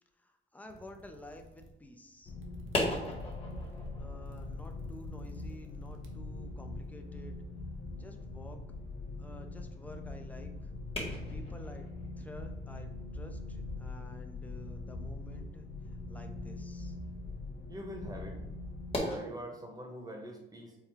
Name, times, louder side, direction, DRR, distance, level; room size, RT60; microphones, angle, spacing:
voice 1, 0.2-2.4 4.0-7.4 8.0-8.6 9.2-10.7 11.3-11.9 12.2-15.7 16.1-17.0, left 1 dB, 10° left, 4 dB, 0.5 m, -51 dB
sound 1, 0.6-6.9, right 2 dB, 85° right, 0.7 m, -57 dB
sound 2, 2.3-19.0, left 2 dB, 70° left, 0.8 m, -42 dB
sound 3, 2.5-19.2, left 1 dB, 25° left, 1.4 m, -43 dB
voice 2, 17.7-18.4 19.0-20.8, equal, 20° right, 1 dB, 1.0 m, -43 dB
4.6 x 2.3 x 3.4 m, 0.92 s
cardioid pair, 90°, 20 cm